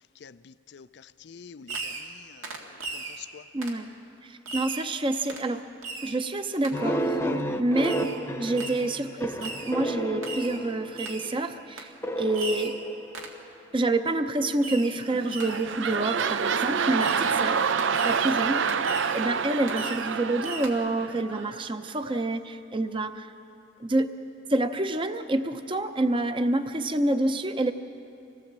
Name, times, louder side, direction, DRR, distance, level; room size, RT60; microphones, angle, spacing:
voice 1, 0.2-0.9 1.2-2.5 2.9-3.4, left 7 dB, 55° left, 0.4 m, -47 dB
Fireworks, 1.7-2.2 2.4-3.2 3.6-3.8 4.5-4.9 5.3-5.5 5.8-6.2 6.6-6.8 7.8-8.2 8.6-8.9 9.4-9.8 10.2-10.6 11.0-11.3 11.8-11.9 12.3-12.8 13.1-13.4 14.6-15.0 15.3-15.7 16.2-16.3 17.0-17.4 17.8-18.3 18.7-19.3 19.7-20.1 20.4-20.7, right 3 dB, 85° right, 2.1 m, -37 dB
voice 2, 3.5-3.9 4.2-5.6 6.0-7.2 7.6-8.0 8.4-12.8 13.7-17.7 18.0-18.6 19.1-23.3 23.8-24.1 24.5-27.7, right 2 dB, 25° right, 0.6 m, -27 dB
sound 1, 6.7-11.3 12.0-13.6, right 1 dB, 10° left, 0.8 m, -31 dB
sound 2, 15.1-21.6 22.1-22.2, right 6 dB, 65° right, 0.5 m, -27 dB
26.0 x 17.5 x 7.4 m
head